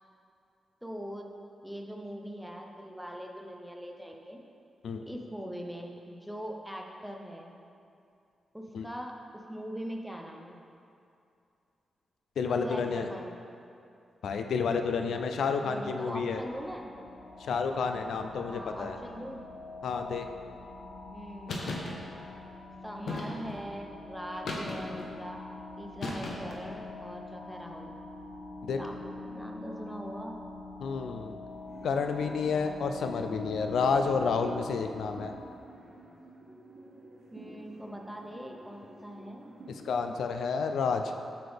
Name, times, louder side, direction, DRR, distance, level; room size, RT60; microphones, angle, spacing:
voice 1, 0.8-1.3 1.6-4.4 5.0-7.5 8.5-10.6 12.5-13.4 15.6-16.9 18.5-19.4 21.1-21.6 22.8-25.4 25.8-27.9 28.7-30.3 33.1-33.6 37.3-39.6, equal, ahead, 1 dB, 0.5 m, -42 dB
voice 2, 12.4-13.1 14.2-16.4 17.4-19.0 19.8-20.3 28.7-28.8 30.8-31.3 31.8-35.3 39.7-41.1, left 5 dB, 85° left, 6 dB, 0.4 m, -30 dB
sound 1, 16.4-35.3, left 2 dB, 15° left, 1.7 m, -44 dB
sound 2, 21.5-21.9 23.1-23.6 24.5-25.1 26.0-26.7, left 2 dB, 65° left, 1.0 m, -36 dB
sound 3, 31.5-40.0, right 2 dB, 70° right, 1.2 m, -51 dB
7.5 x 6.9 x 3.5 m, 2.5 s
wide cardioid pair, 165°, 0 cm